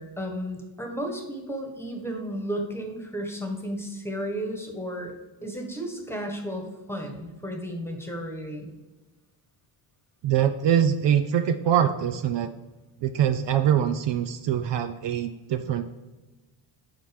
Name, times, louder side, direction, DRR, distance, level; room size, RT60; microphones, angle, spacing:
voice 1, 0.0-5.1 5.4-8.7, equal, 5° left, 2 dB, 1.4 m, -33 dB
voice 2, 10.2-12.5 13.0-15.9, right 9 dB, 60° right, 8 dB, 0.7 m, -23 dB
7.9 x 5.8 x 5.2 m, 1.2 s
cardioid pair, 140°, 50 cm